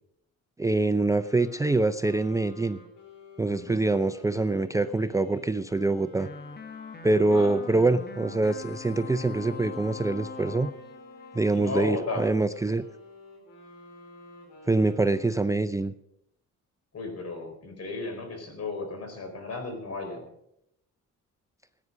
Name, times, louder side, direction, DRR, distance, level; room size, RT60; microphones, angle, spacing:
voice 1, 0.6-2.8 3.4-6.3 7.0-10.7 11.3-12.8 14.7-15.9, right 2 dB, 10° right, 10 dB, 0.5 m, -25 dB
sound 1, 1.0-8.1 8.6-15.8, left 1 dB, 85° left, 4.5 m, -51 dB
voice 2, 3.5-3.8 7.3-7.6 11.5-12.3 16.9-20.2, left 3 dB, 55° left, 5 dB, 4.5 m, -34 dB
sound 2, 6.2-12.3, left 4 dB, 35° left, 1.4 m, -42 dB
16.0 x 9.5 x 6.1 m, 0.78 s
cardioid pair, 90°, 30 cm